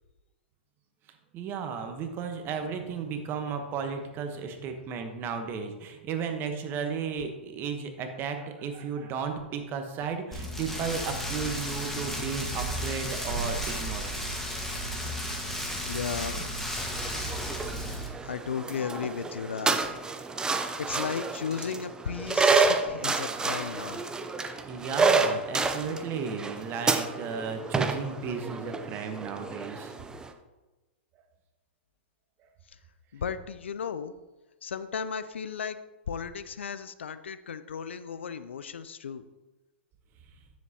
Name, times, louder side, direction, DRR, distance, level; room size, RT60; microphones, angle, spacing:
voice 1, 1.3-14.3 17.0-17.5 24.4-29.9, right 6 dB, 35° right, 6 dB, 1.1 m, -34 dB
Rain, 10.3-18.1, equal, 5° left, 1.5 m, -33 dB
voice 2, 15.9-16.5 18.2-19.8 20.8-24.0 33.1-34.1 34.6-35.8 36.1-39.2, left 6 dB, 80° left, 13 dB, 0.5 m, -35 dB
sound 1, 16.8-30.3, right 4 dB, 10° right, 0.6 m, -29 dB
9.5 x 7.3 x 2.9 m, 1.1 s
hypercardioid pair, 110°, 6 cm